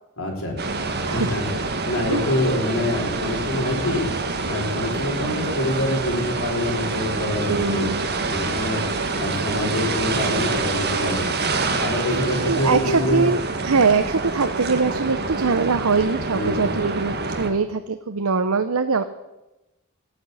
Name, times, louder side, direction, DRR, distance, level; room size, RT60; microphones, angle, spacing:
voice 1, 0.2-0.6 1.1-1.4 1.9-4.0 4.5-7.8 8.2-8.8 9.2-11.3 11.8-13.2 16.3-16.7, left 1 dB, 65° left, 1 dB, 4.9 m, -25 dB
sound 1, 0.6-17.5, right 3 dB, 50° right, 1.8 m, -26 dB
voice 2, 1.0-1.4 2.1-2.3 7.5-8.0 12.0-19.0, right 4 dB, 75° right, 10 dB, 0.8 m, -22 dB
14.5 x 9.9 x 9.6 m, 1.0 s
head